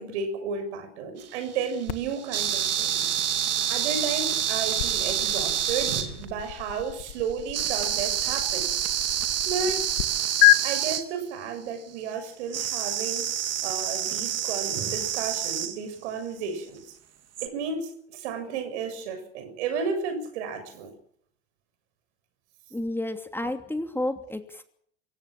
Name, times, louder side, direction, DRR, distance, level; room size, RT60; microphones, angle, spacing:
voice 1, 0.0-3.2 3.7-8.8 9.5-9.8 10.6-13.3 13.6-16.8 17.4-20.9, right 5 dB, 70° right, 8 dB, 6.9 m, -33 dB
sound 1, 1.2-6.4 7.5-11.0 12.5-15.8 17.4-17.5, right 10 dB, 45° right, 3.1 m, -27 dB
sound 2, 1.9-10.0 10.4-10.6, left 20 dB, 70° left, 1.7 m, -29 dB
voice 2, 22.7-24.6, left 1 dB, 5° left, 6 dB, 2.8 m, -31 dB
25.0 x 16.5 x 7.5 m, 0.65 s
hypercardioid pair, 75°, 35 cm